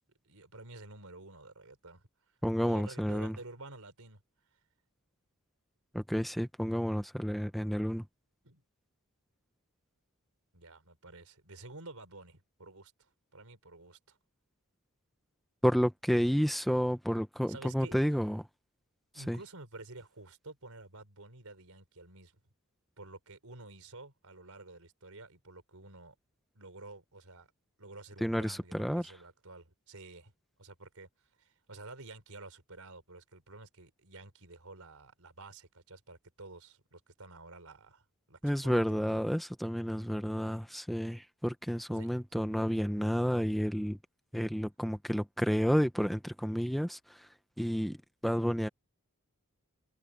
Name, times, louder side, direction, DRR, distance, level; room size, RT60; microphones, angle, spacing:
voice 1, 0.2-2.0 2.6-4.2 4.5-4.6 8.4-8.6 10.5-14.2 17.5-18.0 19.1-22.5 23.0-26.1 26.5-27.5 27.8-30.3 30.6-39.3 41.9-42.1, right 2 dB, 75° right, 5.0 m, -51 dB
voice 2, 2.4-3.4 5.9-8.1 15.6-18.4 19.1-19.4 28.2-29.1 38.4-44.0 44.3-47.3 47.6-48.0 48.2-48.7, equal, ahead, 0.8 m, -30 dB
head